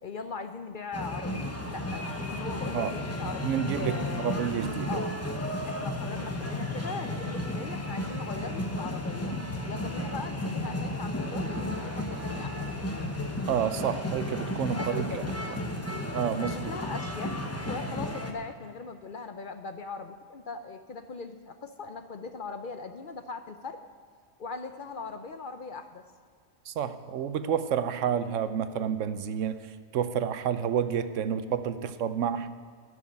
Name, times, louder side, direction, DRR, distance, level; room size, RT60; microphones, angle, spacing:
voice 1, 0.0-4.4 4.9-5.2 5.6-9.4 9.7-12.8 14.7-15.3 16.4-17.4 17.6-23.8 24.4-26.0, left 4 dB, 50° left, 8 dB, 0.7 m, -40 dB
sound 1, 0.9-18.3, left 1 dB, 15° left, 1.0 m, -33 dB
voice 2, 3.4-4.9 13.5-15.2 16.1-16.7 26.7-29.7 29.9-32.5, right 8 dB, 80° right, 11 dB, 1.0 m, -29 dB
12.5 x 6.4 x 9.2 m, 2.1 s
omnidirectional pair, 1.3 m